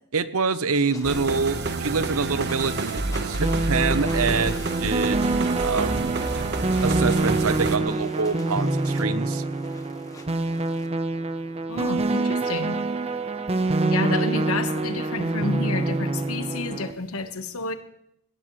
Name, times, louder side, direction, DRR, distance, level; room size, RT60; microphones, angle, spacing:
voice 1, 0.1-5.3 5.6-6.1 6.8-9.4, right 4 dB, 70° right, 14 dB, 0.8 m, -26 dB
sound 1, 0.9-10.9, left 2 dB, 15° left, 1.3 m, -46 dB
sound 2, 1.0-7.8, right 3 dB, 50° right, 1.2 m, -28 dB
sound 3, 3.4-16.9, right 2 dB, 30° right, 1.0 m, -26 dB
voice 2, 11.7-12.8 13.8-17.7, left 3 dB, 70° left, 9 dB, 1.3 m, -30 dB
18.5 x 18.0 x 3.2 m, 0.73 s
head